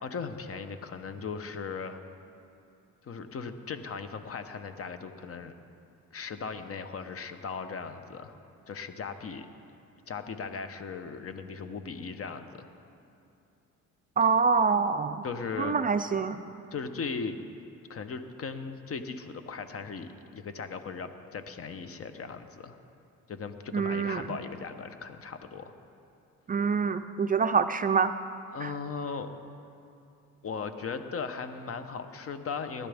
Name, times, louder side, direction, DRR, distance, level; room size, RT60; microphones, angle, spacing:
voice 1, 0.0-2.0 3.0-5.5 6.1-8.4 8.7-9.5 10.1-12.7 15.2-15.8 16.7-17.4 17.9-22.8 23.3-25.7 28.5-29.3 30.4-32.9, left 5 dB, 50° left, 9 dB, 0.9 m, -38 dB
voice 2, 14.2-15.2 15.6-16.4 23.7-24.3 26.5-28.1 28.6-28.7, right 5 dB, 30° right, 9 dB, 0.4 m, -26 dB
19.5 x 11.5 x 3.5 m, 2.6 s
cardioid pair, 90°, 30 cm